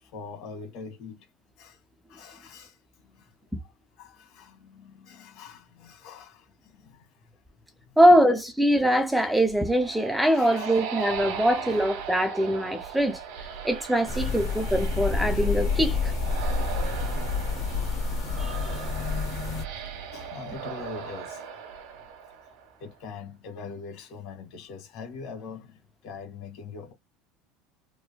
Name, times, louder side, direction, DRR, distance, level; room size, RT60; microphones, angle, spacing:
voice 1, 0.1-1.2 1.6-1.8 2.1-2.7 3.2-3.3 4.0-7.0 10.3-10.8 11.3-11.4 11.7-11.8 14.1-14.3 17.2-17.8 18.6-19.2 19.9-21.4 22.8-26.9, left 5 dB, 55° left, 1.5 m, -43 dB
voice 2, 8.0-13.2 13.6-16.1 18.4-18.6, equal, ahead, 0.3 m, -22 dB
sound 1, 9.3-22.9, right 7 dB, 70° right, 0.9 m, -38 dB
sound 2, 14.1-19.6, left 4 dB, 40° left, 0.7 m, -28 dB
3.2 x 2.1 x 2.2 m
cardioid pair, 155°, 0 cm